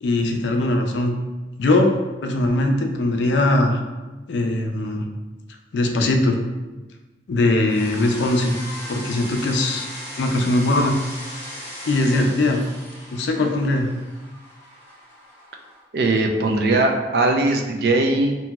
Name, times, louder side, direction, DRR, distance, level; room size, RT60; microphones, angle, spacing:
voice 1, 0.0-1.1 1.6-1.9 2.2-3.8 4.3-5.0 5.7-6.4 7.3-8.5 8.9-9.9 10.2-11.0 11.9-12.6 13.1-13.9, left 2 dB, 80° left, 3 dB, 0.4 m, -20 dB
sound 1, 7.7-15.8, equal, 15° left, 0.6 m, -37 dB
voice 2, 15.9-18.4, right 2 dB, 60° right, 3 dB, 0.3 m, -19 dB
2.8 x 2.6 x 2.3 m, 1.2 s
head